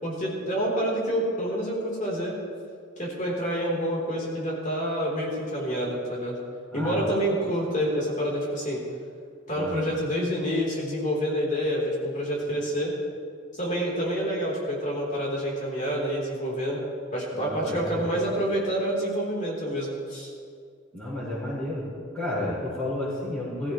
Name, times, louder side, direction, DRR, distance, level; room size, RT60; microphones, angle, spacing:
voice 1, 0.0-2.4 3.0-6.4 6.7-8.8 9.5-12.9 13.6-16.8 17.1-20.3, equal, 40° left, -4 dB, 3.7 m, -28 dB
voice 2, 6.7-7.0 9.5-9.9 17.3-18.2 20.9-21.8 22.1-23.7, left 1 dB, 10° left, -12 dB, 4.9 m, -32 dB
21.5 x 15.0 x 3.2 m, 2.2 s
head